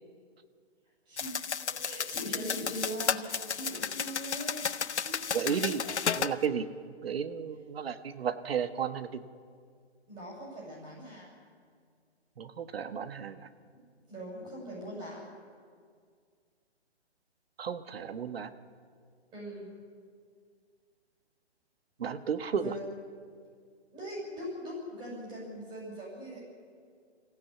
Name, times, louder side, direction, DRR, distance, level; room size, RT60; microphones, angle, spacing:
voice 1, 1.1-4.6 5.0-6.1 10.1-11.3 14.1-15.3 19.3-19.7 22.6-22.8 23.9-26.4, equal, 15° right, -5 dB, 6.7 m, -41 dB
sound 1, 1.2-6.3, left 6 dB, 80° left, 1.0 m, -33 dB
voice 2, 5.3-5.8 6.2-6.6 7.0-9.2 12.4-13.4 17.6-18.5 22.0-22.8, right 7 dB, 60° right, 11 dB, 1.2 m, -33 dB
25.0 x 15.5 x 8.3 m, 2.1 s
hypercardioid pair, 150°, 33 cm